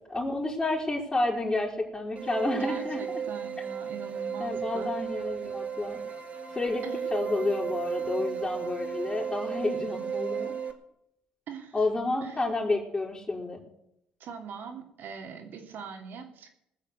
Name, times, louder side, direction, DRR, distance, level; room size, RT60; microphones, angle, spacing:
voice 1, 0.1-3.0 4.4-6.0 6.5-6.8 7.1-10.5 11.7-13.6, left 2 dB, 25° left, -5 dB, 4.4 m, -30 dB
sound 1, 2.2-10.7, right 7 dB, 40° right, 2.8 m, -34 dB
voice 2, 2.5-4.9 6.8-7.1 11.5-11.8 12.2-12.4 14.2-16.5, right 6 dB, 65° right, 4 dB, 3.2 m, -42 dB
20.0 x 6.7 x 8.3 m, 0.79 s
supercardioid pair, 65°, 4 cm